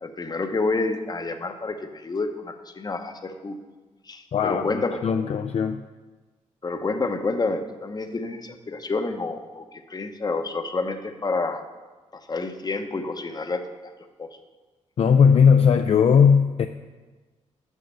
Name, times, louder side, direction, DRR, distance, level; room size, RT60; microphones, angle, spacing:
voice 1, 0.0-3.5 4.1-5.0 6.6-11.6 12.1-13.6 14.2-14.3, left 3 dB, 30° left, 7 dB, 0.8 m, -29 dB
voice 2, 4.3-4.7 5.0-5.8 15.0-16.7, left 6 dB, 50° left, 7 dB, 0.4 m, -18 dB
6.4 x 6.3 x 6.8 m, 1.3 s
cardioid pair, 80°, 13 cm